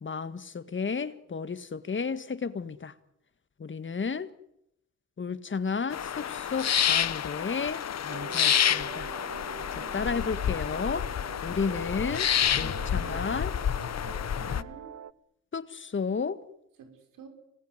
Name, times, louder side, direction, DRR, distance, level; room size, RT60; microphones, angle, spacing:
voice 1, 0.0-2.9 3.6-4.3 5.2-9.1 9.9-11.1 11.4-12.3 12.6-13.5 14.5-14.6 15.5-16.4, left 5 dB, 35° left, 1.8 m, -32 dB
sound 1, 5.9-14.6, left 9 dB, 55° left, 1.1 m, -29 dB
sound 2, 8.1-15.1, right 10 dB, 60° right, 0.9 m, -45 dB
voice 2, 9.7-10.1 12.6-13.3 14.0-14.9 16.8-17.3, right 5 dB, 85° right, 6.2 m, -49 dB
27.0 x 19.0 x 9.9 m
cardioid pair, 80°, 32 cm